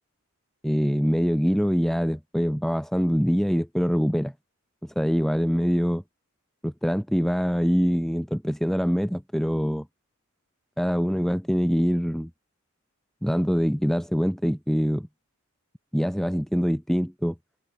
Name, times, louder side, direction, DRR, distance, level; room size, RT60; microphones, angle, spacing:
voice 1, 0.6-4.3 4.8-6.0 6.6-9.9 10.8-12.3 13.2-15.1 15.9-17.3, equal, ahead, 6.2 m, -24 dB
head